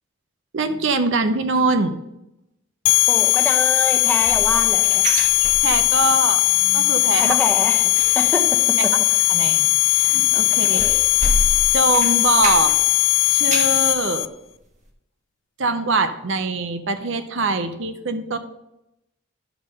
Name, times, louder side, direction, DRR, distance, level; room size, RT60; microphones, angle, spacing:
voice 1, 0.5-2.0 5.6-7.4 9.3-9.7 9.9-10.8 11.7-12.8 13.3-14.3 15.6-18.4, right 3 dB, 70° right, 9 dB, 0.7 m, -23 dB
sound 1, 2.8-14.3, left 18 dB, 65° left, 0.3 m, -18 dB
voice 2, 3.1-5.0 7.2-8.6 10.7-11.1, left 2 dB, 10° left, 3 dB, 1.0 m, -26 dB
sound 2, 3.9-6.2 6.5-6.8 7.1-12.9 13.2-13.9 14.3-14.4 14.9-15.0, right 1 dB, 35° right, 1.2 m, -30 dB
11.0 x 3.7 x 6.5 m, 0.86 s
head